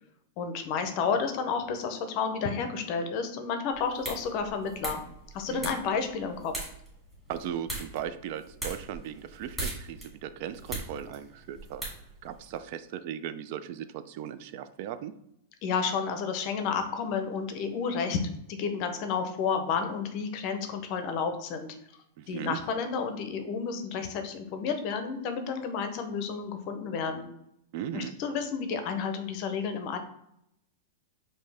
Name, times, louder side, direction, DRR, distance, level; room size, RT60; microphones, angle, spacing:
voice 1, 0.4-5.0 5.3-6.5 15.6-18.2 18.5-21.7 22.3-27.3 27.9-30.0, left 5 dB, 40° left, 7 dB, 0.6 m, -31 dB
sound 1, 3.7-12.6, right 2 dB, 5° right, 1.7 m, -41 dB
voice 2, 5.5-5.8 7.3-11.8 12.2-15.1 22.2-22.6 27.7-28.1, right 10 dB, 45° right, 11 dB, 0.3 m, -37 dB
5.3 x 2.7 x 3.4 m, 0.78 s
supercardioid pair, 160°, 0 cm